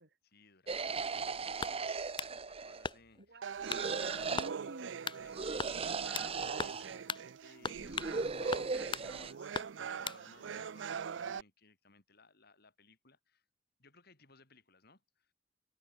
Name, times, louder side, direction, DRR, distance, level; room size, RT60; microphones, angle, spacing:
voice 1, 0.2-3.5 4.0-4.4 5.2-7.1 7.4-13.4 13.8-15.3, left 3 dB, 60° left, 7.2 m, -63 dB
sound 1, 0.7-2.9 3.6-4.5 5.3-7.0 7.8-9.3, right 4 dB, 35° right, 0.9 m, -37 dB
sound 2, 1.6-2.4 2.8-3.3 3.7-3.9 4.4-4.6 5.1-5.2 5.6-6.3 6.6-6.8 7.1-7.3 7.6-8.2 8.5-9.1 9.5-10.2, left 5 dB, 25° left, 0.8 m, -39 dB
voice 2, 3.2-5.4, right 1 dB, 65° right, 4.6 m, -52 dB
sound 3, 3.4-11.4, right 7 dB, 85° right, 0.5 m, -43 dB
head